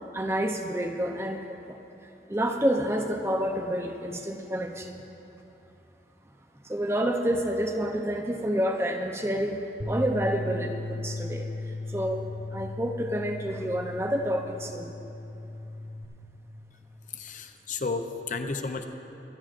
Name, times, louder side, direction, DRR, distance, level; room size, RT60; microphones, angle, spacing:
voice 1, 0.1-1.8 2.3-5.0 6.6-15.0, equal, 15° right, 4 dB, 0.5 m, -29 dB
Bass guitar, 9.8-16.0, left 2 dB, 40° right, 1.3 m, -36 dB
voice 2, 17.2-18.8, left 4 dB, 45° left, 6 dB, 0.6 m, -32 dB
24.0 x 10.5 x 2.5 m, 2.9 s
head